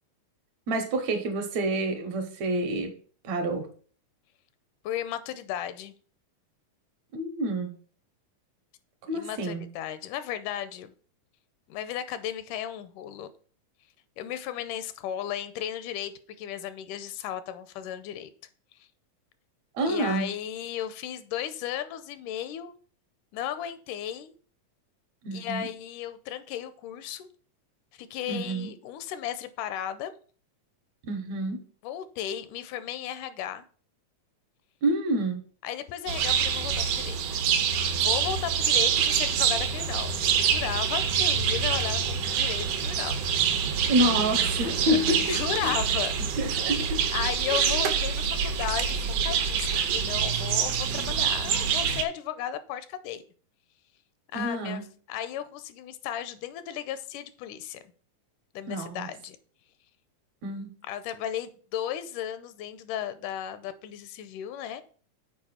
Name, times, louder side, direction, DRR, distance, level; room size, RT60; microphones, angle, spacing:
voice 1, 0.7-2.9 3.2-3.7 7.1-7.7 9.1-9.6 19.8-20.3 25.2-25.7 28.3-28.7 31.0-31.6 34.8-35.4 43.9-45.4 46.4-47.0 47.5-47.7 54.3-54.8 58.7-59.1 60.4-60.7, right 1 dB, 70° right, 2.2 m, -28 dB
voice 2, 4.8-5.9 9.1-10.9 11.7-13.3 14.2-18.3 18.8-18.9 19.9-22.7 23.3-24.3 25.3-27.3 27.9-30.1 31.8-33.7 35.6-37.4 38.0-43.2 44.9-46.1 47.1-53.2 54.3-54.8 55.1-57.8 58.5-59.4 60.9-64.8, left 10 dB, 85° left, 2.1 m, -35 dB
sound 1, 36.1-52.0, right 7 dB, 85° right, 2.3 m, -26 dB
7.1 x 4.7 x 4.3 m
omnidirectional pair, 3.6 m